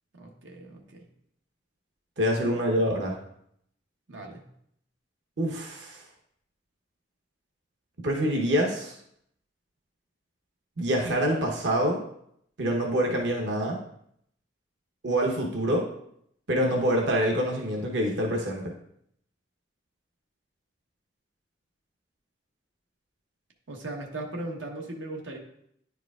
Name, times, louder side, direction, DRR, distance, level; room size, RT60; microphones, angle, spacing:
voice 1, 0.2-1.0 4.1-4.5 23.7-25.4, right 2 dB, 90° right, 1 dB, 1.0 m, -38 dB
voice 2, 2.2-3.2 5.4-6.0 8.0-9.0 10.8-12.0 12.6-13.8 15.0-15.9 16.5-18.7, equal, 65° right, 0 dB, 0.9 m, -26 dB
10.0 x 4.7 x 2.4 m, 0.71 s
head